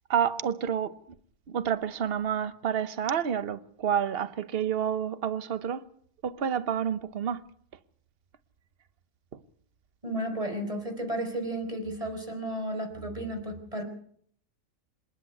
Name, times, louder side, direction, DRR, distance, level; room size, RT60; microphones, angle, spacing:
voice 1, 0.1-1.0 1.5-5.8 6.2-7.4 9.3-9.4, right 8 dB, 50° right, 1.1 m, -29 dB
voice 2, 10.0-13.8, right 1 dB, 25° right, 4.7 m, -33 dB
26.5 x 10.5 x 9.6 m
omnidirectional pair, 1.4 m